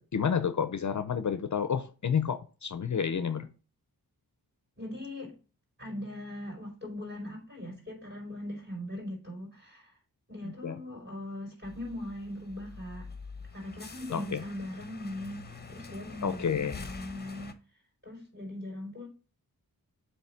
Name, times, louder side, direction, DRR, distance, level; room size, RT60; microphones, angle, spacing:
voice 1, 0.0-3.5 10.4-10.8 14.1-14.4 16.2-16.8, left 7 dB, 50° left, 0.6 m, -30 dB
voice 2, 4.8-5.4 5.8-9.9 10.3-13.1 13.5-17.5 18.0-19.1, left 1 dB, 30° right, 4.4 m, -40 dB
sound 1, 11.6-17.5, left 4 dB, 25° left, 0.9 m, -46 dB
7.5 x 3.2 x 5.8 m
wide cardioid pair, 115°, 37 cm